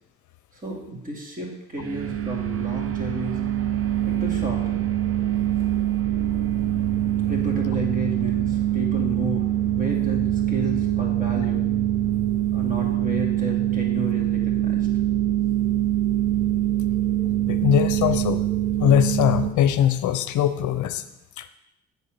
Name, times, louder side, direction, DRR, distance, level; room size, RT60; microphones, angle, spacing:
voice 1, 0.5-3.4 4.1-4.9 7.3-11.6 12.5-14.9, equal, 25° right, -1 dB, 2.4 m, -32 dB
sound 1, 1.8-19.5, right 12 dB, 50° right, 0.8 m, -24 dB
voice 2, 17.5-18.4 18.8-21.0 21.4-21.5, left 10 dB, 75° left, 11 dB, 0.6 m, -21 dB
8.1 x 4.3 x 6.6 m, 0.87 s
cardioid pair, 90°, 30 cm